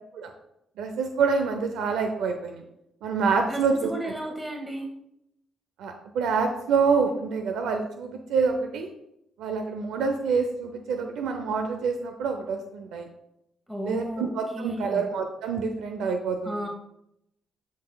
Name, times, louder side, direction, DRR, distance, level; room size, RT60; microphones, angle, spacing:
voice 1, 0.8-2.6 3.0-3.9 5.8-8.9 9.4-13.1 13.8-16.7, right 5 dB, 85° right, 5 dB, 0.6 m, -27 dB
voice 2, 3.4-4.9 13.7-14.3 14.5-15.0 16.4-16.7, equal, 10° right, 0 dB, 1.4 m, -33 dB
12.0 x 4.1 x 2.3 m, 0.81 s
cardioid pair, 90°, 0 cm